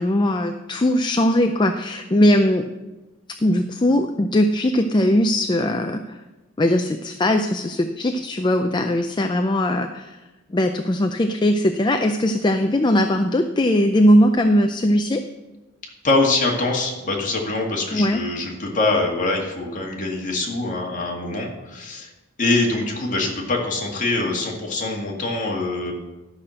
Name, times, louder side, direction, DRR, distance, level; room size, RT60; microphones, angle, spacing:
voice 1, 0.0-2.6 3.4-6.2 6.6-10.2 10.5-15.2 17.9-18.2, left 1 dB, 20° left, 6 dB, 0.5 m, -19 dB
voice 2, 16.0-22.1 22.4-25.9, left 2 dB, 40° left, -1 dB, 2.1 m, -24 dB
12.0 x 5.8 x 6.4 m, 1.1 s
head